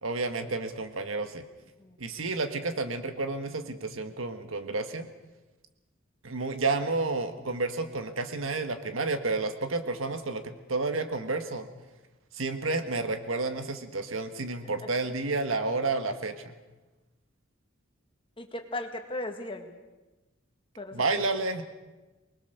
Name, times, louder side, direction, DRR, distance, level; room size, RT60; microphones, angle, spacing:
voice 1, 0.0-1.4 2.0-5.1 6.2-11.7 12.3-16.5 20.9-21.6, right 3 dB, 80° right, 8 dB, 1.6 m, -30 dB
voice 2, 18.4-19.8 20.8-21.4, left 1 dB, 25° left, 5 dB, 1.9 m, -37 dB
24.0 x 20.5 x 6.7 m, 1.2 s
head